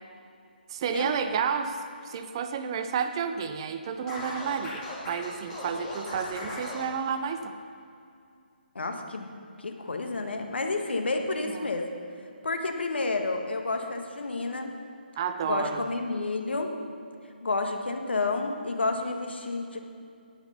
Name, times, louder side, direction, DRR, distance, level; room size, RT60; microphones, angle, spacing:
voice 1, 0.7-7.5 11.5-11.7 15.2-15.8, right 7 dB, 30° right, 9 dB, 0.5 m, -31 dB
Scratching (performance technique), 4.1-6.9, left 1 dB, 10° left, 2.4 m, -37 dB
voice 2, 8.7-9.3 9.6-11.9 12.4-14.7 15.4-16.7 17.4-19.8, left 3 dB, 80° left, 4 dB, 1.5 m, -30 dB
17.5 x 5.9 x 5.6 m, 2.4 s
hypercardioid pair, 160°, 6 cm